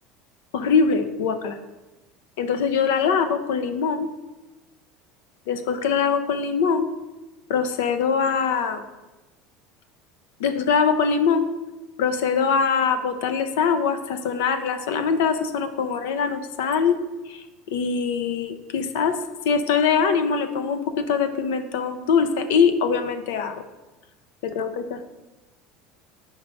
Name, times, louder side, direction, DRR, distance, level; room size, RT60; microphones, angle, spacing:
voice 1, 0.5-1.6 2.4-4.1 5.5-6.9 7.5-8.8 10.4-11.5 12.0-17.0 17.3-19.2 19.4-23.6 24.4-25.0, left 6 dB, 85° left, 9 dB, 0.6 m, -23 dB
5.6 x 4.6 x 5.1 m, 1.1 s
cardioid pair, 175°, 0 cm